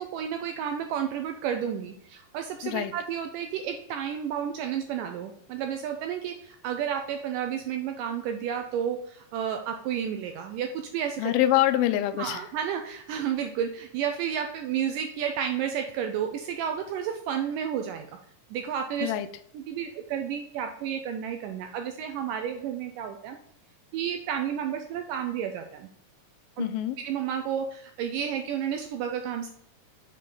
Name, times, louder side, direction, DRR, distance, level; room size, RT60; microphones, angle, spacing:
voice 1, 0.0-11.3 12.2-18.1 18.5-19.1 19.5-23.4 23.9-25.9 26.6-26.7 27.0-29.5, right 8 dB, 80° right, 5 dB, 1.9 m, -31 dB
voice 2, 11.2-12.5 19.0-19.3 26.6-27.0, left 13 dB, 90° left, 10 dB, 2.4 m, -25 dB
6.6 x 3.6 x 4.0 m, 0.67 s
omnidirectional pair, 4.2 m